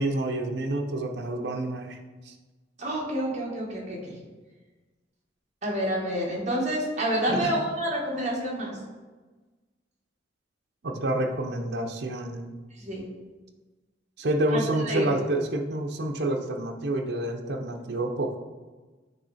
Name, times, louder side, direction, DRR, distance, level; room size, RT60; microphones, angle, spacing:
voice 1, 0.0-2.0 2.3-2.4 7.3-7.5 10.8-12.5 14.2-18.4, right 1 dB, 65° right, 3 dB, 0.7 m, -28 dB
voice 2, 2.8-4.2 5.6-8.8 12.8-13.1 14.5-15.1, right 1 dB, 40° right, -4 dB, 1.6 m, -28 dB
8.8 x 3.1 x 4.1 m, 1.3 s
head